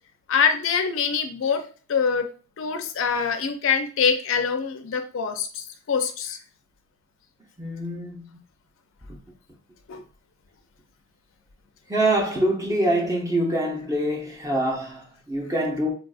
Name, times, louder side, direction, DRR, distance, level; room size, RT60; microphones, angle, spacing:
voice 1, 0.3-1.6 1.9-2.3 2.6-6.4 9.9-10.0, left 6 dB, 65° left, 0.4 m, -24 dB
voice 2, 7.6-8.4 11.9-15.9, right 1 dB, 15° right, 0.7 m, -25 dB
4.0 x 2.5 x 2.3 m
head